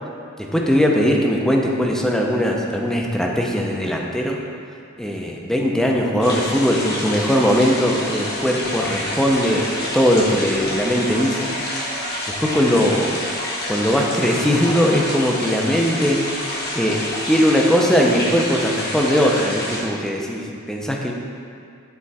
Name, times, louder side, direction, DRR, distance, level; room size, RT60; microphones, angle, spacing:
voice 1, 0.4-4.4 5.0-9.7 9.9-11.5 12.3-13.2 13.7-21.1, equal, 5° left, -1 dB, 0.6 m, -20 dB
sound 1, 6.2-19.8, left 1 dB, 50° left, 1.2 m, -28 dB
9.4 x 3.8 x 4.2 m, 2.4 s
head